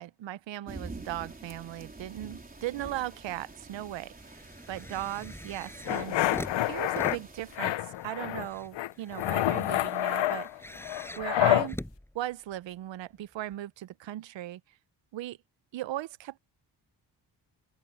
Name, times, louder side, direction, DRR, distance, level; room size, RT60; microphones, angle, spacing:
voice 1, 0.0-6.2 6.6-10.5 11.2-11.8 12.1-14.6 15.1-15.4 15.7-16.4, right 14 dB, 85° right, 0.7 m, -37 dB
sound 1, 0.7-7.6, right 2 dB, 20° right, 3.9 m, -47 dB
sound 2, 2.3-3.0 3.3-12.7 13.5-13.6, left 1 dB, 5° left, 6.9 m, -45 dB
sound 3, 5.9-7.2 7.6-8.5 8.7-11.7, left 14 dB, 75° left, 0.7 m, -28 dB
open air
cardioid pair, 100°, 43 cm